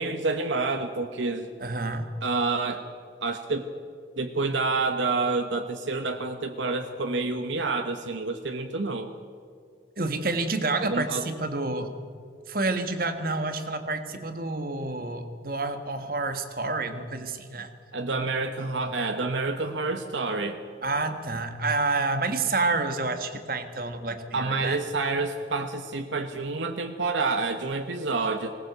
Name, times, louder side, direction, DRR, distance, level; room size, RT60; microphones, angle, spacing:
voice 1, 0.0-1.5 2.2-2.8 3.2-3.7 4.2-9.1 10.8-11.3 17.9-20.6 24.3-28.5, right 3 dB, 90° right, 5 dB, 1.2 m, -28 dB
voice 2, 1.6-2.1 10.0-11.9 12.5-17.7 20.8-24.8, right 3 dB, 50° right, 8 dB, 1.6 m, -29 dB
20.0 x 18.5 x 8.0 m, 2.2 s
head